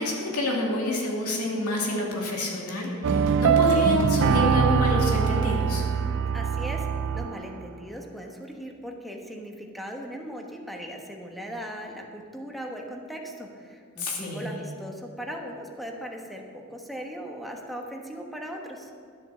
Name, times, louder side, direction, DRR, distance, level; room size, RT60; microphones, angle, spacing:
voice 1, 0.0-5.8 14.0-14.6, left 1 dB, 90° left, -1 dB, 2.4 m, -28 dB
sound 1, 3.0-7.5, right 6 dB, 60° right, 0.4 m, -23 dB
voice 2, 6.3-16.4 16.7-18.9, equal, ahead, 1 dB, 1.2 m, -38 dB
12.0 x 7.7 x 6.2 m, 2.1 s
head